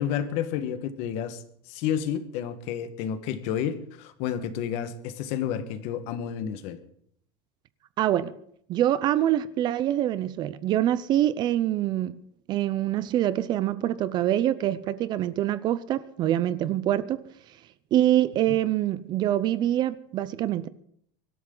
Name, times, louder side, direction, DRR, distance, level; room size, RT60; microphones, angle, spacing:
voice 1, 0.0-6.8 18.5-18.6, left 9 dB, 50° left, 1.5 m, -30 dB
voice 2, 8.0-8.3 8.7-12.2 12.5-17.2 17.9-20.7, right 12 dB, 30° right, 0.6 m, -25 dB
24.0 x 12.5 x 3.9 m
supercardioid pair, 165°, 14 cm